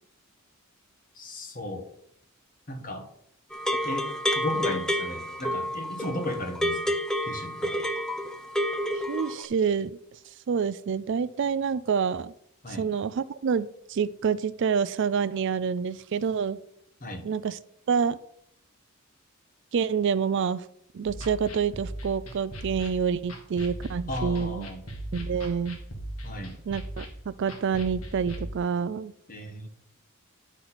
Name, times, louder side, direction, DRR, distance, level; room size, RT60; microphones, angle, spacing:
voice 1, 1.1-1.9 2.7-3.1 3.8-4.1 4.3-7.0 7.2-7.8 12.6-12.9 17.0-17.3 24.1-24.8 26.2-26.6 29.3-29.7, left 1 dB, 40° left, 5 dB, 1.4 m, -35 dB
sound 1, 3.5-9.4, equal, 5° left, 0.5 m, -29 dB
voice 2, 8.9-10.0 10.5-12.3 12.7-16.6 17.2-17.6 17.9-18.2 19.7-20.7 20.9-24.7 25.1-25.8 26.7-29.1, right 6 dB, 55° right, 16 dB, 0.4 m, -27 dB
sound 2, 21.1-28.5, right 1 dB, 75° left, 1.8 m, -38 dB
10.0 x 4.2 x 5.9 m, 0.71 s
head